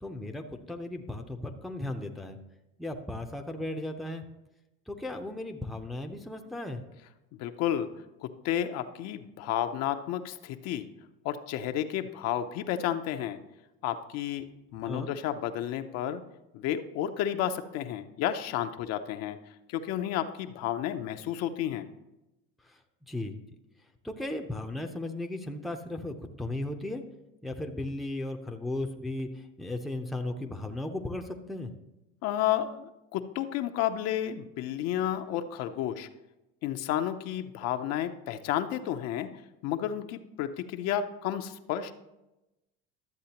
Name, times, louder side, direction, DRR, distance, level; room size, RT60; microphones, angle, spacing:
voice 1, 0.0-2.4 2.8-4.2 4.9-6.8 14.8-15.1 22.6-22.8 23.1-23.4 24.0-27.0 27.4-31.7, left 1 dB, ahead, 4 dB, 0.6 m, -36 dB
voice 2, 7.4-7.9 8.4-10.9 11.2-13.4 13.8-14.4 14.7-16.2 16.5-19.4 19.7-21.9 32.2-36.1 36.6-39.3 39.6-41.9, left 11 dB, 60° left, 8 dB, 0.6 m, -31 dB
12.0 x 7.4 x 2.9 m, 0.96 s
supercardioid pair, 110°, 29 cm